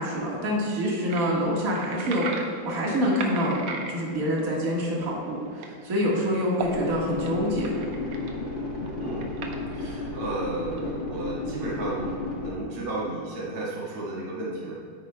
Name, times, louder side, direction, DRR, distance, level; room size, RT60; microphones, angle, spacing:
voice 1, 0.0-2.3 2.7-7.7, equal, 45° right, -4 dB, 1.9 m, -26 dB
sound 1, 1.1-5.0 5.6-5.7 5.9-6.0 6.4-6.7 7.2-8.5 8.9-10.1 10.8-10.9, right 5 dB, 90° right, 1.8 m, -36 dB
sound 2, 6.6-12.5, left 2 dB, 35° left, 2.0 m, -33 dB
voice 2, 9.0-14.7, right 2 dB, 75° right, -6 dB, 2.5 m, -33 dB
13.5 x 9.4 x 2.2 m, 2.4 s
omnidirectional pair, 2.3 m